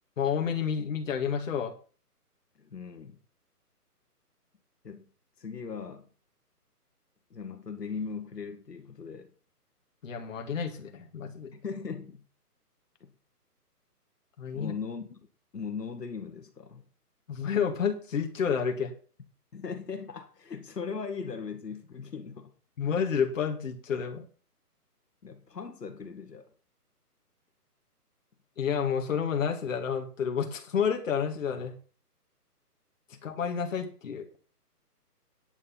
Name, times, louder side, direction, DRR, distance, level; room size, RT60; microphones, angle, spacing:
voice 1, 0.2-1.7 10.0-11.5 14.4-14.7 17.3-18.9 22.8-24.3 28.6-31.7 33.2-34.3, left 7 dB, 55° left, 2.1 m, -30 dB
voice 2, 2.6-3.2 4.8-5.0 5.4-6.1 7.3-9.3 11.5-12.2 13.0-13.1 14.5-15.2 15.5-16.9 19.5-22.5 25.2-26.5 33.1-33.2, left 5 dB, 85° left, 2.2 m, -39 dB
9.8 x 8.3 x 5.7 m
hypercardioid pair, 155°, 47 cm